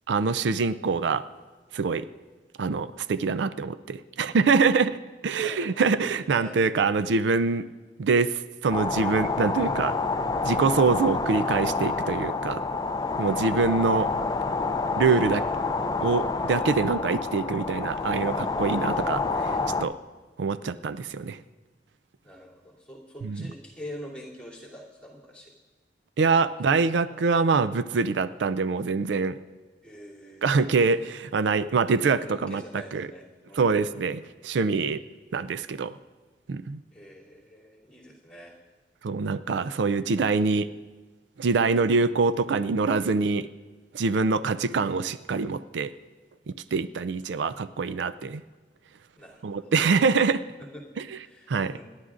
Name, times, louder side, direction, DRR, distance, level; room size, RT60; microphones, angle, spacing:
voice 1, 0.1-1.2 1.7-2.1 2.6-7.6 8.0-9.9 10.4-12.6 13.2-14.1 15.0-15.4 16.0-19.9 20.4-21.4 23.2-23.4 26.2-29.4 30.4-32.6 32.9-33.1 33.6-35.0 35.3-36.0 36.5-36.8 39.0-40.7 41.4-43.5 43.9-45.9 46.7-48.4 49.4-50.4 51.1-51.2 51.5-51.7, right 4 dB, 80° right, 14 dB, 0.4 m, -24 dB
voice 2, 5.4-6.6 22.2-25.5 26.7-26.8 29.8-30.6 32.1-34.1 36.9-38.5 49.2-49.7 50.6-50.8 51.2-51.8, equal, 5° left, -5 dB, 2.9 m, -45 dB
sound 1, 8.7-19.8, left 3 dB, 20° left, 0.4 m, -28 dB
27.5 x 11.5 x 2.5 m, 1.3 s
head